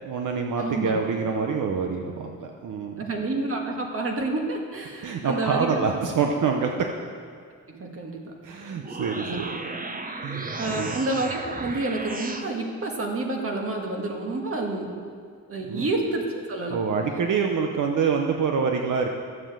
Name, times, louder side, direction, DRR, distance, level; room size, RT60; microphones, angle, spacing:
voice 1, 0.0-3.0 5.0-6.7 8.4-9.6 10.2-11.0 15.7-15.9 16.7-19.1, right 5 dB, 75° right, 3 dB, 0.9 m, -26 dB
voice 2, 0.6-1.0 3.0-5.8 7.8-8.2 9.2-9.5 10.6-14.9 15.5-16.8, right 2 dB, 45° right, 1 dB, 1.7 m, -29 dB
sound 1, 8.7-12.5, right 3 dB, 25° right, 0.8 m, -34 dB
12.5 x 7.7 x 7.6 m, 2.1 s
wide cardioid pair, 175°, 31 cm